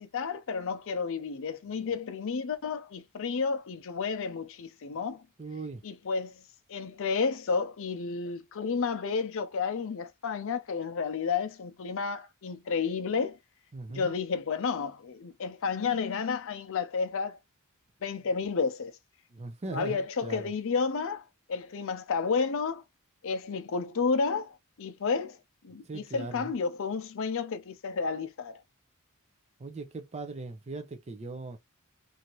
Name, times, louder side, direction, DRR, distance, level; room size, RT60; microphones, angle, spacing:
voice 1, 0.0-5.2 5.8-6.4 6.7-13.4 13.9-17.4 18.0-18.9 19.7-21.2 21.5-22.8 23.2-25.4 25.6-28.6, left 5 dB, 60° left, 0.5 m, -31 dB
voice 2, 5.4-5.8 13.7-14.1 19.3-20.5 25.8-26.5 29.6-31.6, right 3 dB, 30° right, 0.5 m, -39 dB
2.7 x 2.5 x 3.0 m
head